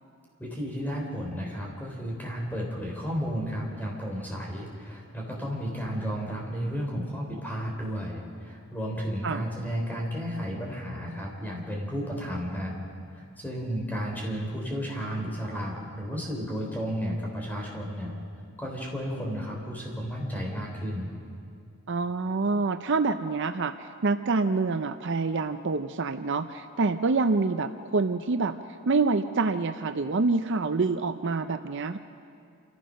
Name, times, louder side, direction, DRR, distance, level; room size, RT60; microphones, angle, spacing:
voice 1, 0.4-12.8 13.1-18.1 18.6-21.1, equal, 10° left, -1 dB, 3.6 m, -33 dB
voice 2, 21.9-28.5 28.9-32.0, right 3 dB, 55° right, 9 dB, 0.6 m, -26 dB
28.5 x 14.5 x 6.4 m, 2.4 s
head